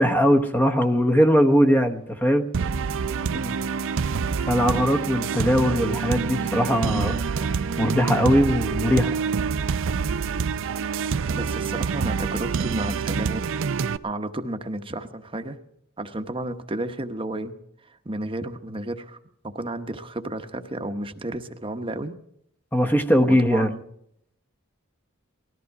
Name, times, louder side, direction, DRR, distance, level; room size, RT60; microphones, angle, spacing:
voice 1, 0.0-2.5 4.4-7.2 7.8-9.2 22.7-23.7, equal, 10° left, 8 dB, 1.0 m, -20 dB
sound 1, 1.7-7.9, left 1 dB, 65° left, 4.9 m, -49 dB
sound 2, 2.5-14.0, right 5 dB, 65° right, 0.5 m, -26 dB
voice 2, 3.3-3.6 11.3-13.7 14.0-15.6 16.0-17.5 17.9-19.2 19.5-22.2 23.2-23.8, right 1 dB, 25° right, 7 dB, 1.0 m, -32 dB
19.5 x 14.0 x 4.7 m, 0.73 s
head